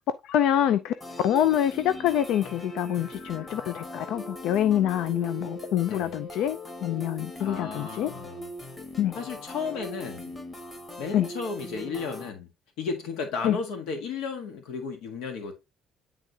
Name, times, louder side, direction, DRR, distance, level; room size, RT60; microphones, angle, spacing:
voice 1, 0.2-0.9 1.2-8.1 9.0-9.1 11.1-11.3 13.4-13.6, left 11 dB, 70° left, 0.4 m, -26 dB
sound 1, 1.0-12.3, equal, 20° left, 1.3 m, -40 dB
voice 2, 7.4-8.5 9.1-10.3 11.0-12.5 12.8-15.5, left 5 dB, 90° left, 1.5 m, -34 dB
9.9 x 3.6 x 2.8 m
cardioid pair, 155°, 0 cm